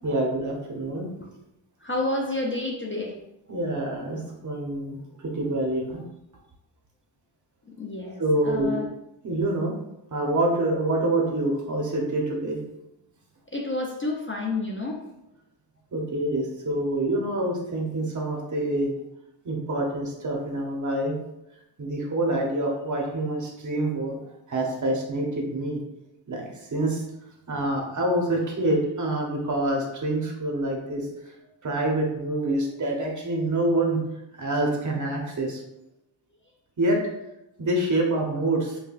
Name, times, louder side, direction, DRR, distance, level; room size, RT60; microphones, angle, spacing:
voice 1, 0.0-1.1 3.5-6.0 8.2-8.8 9.2-9.7 10.1-12.6 15.9-18.9 19.4-21.2 21.8-24.2 24.5-25.8 26.3-27.0 27.5-31.1 31.6-34.0 34.4-35.6 36.8-37.0 37.6-38.8, right 1 dB, 40° right, -1 dB, 0.8 m, -26 dB
voice 2, 1.8-3.2 7.7-8.9 13.5-15.0, left 2 dB, 30° left, -1 dB, 0.4 m, -30 dB
5.4 x 2.2 x 2.3 m, 0.87 s
wide cardioid pair, 135°, 46 cm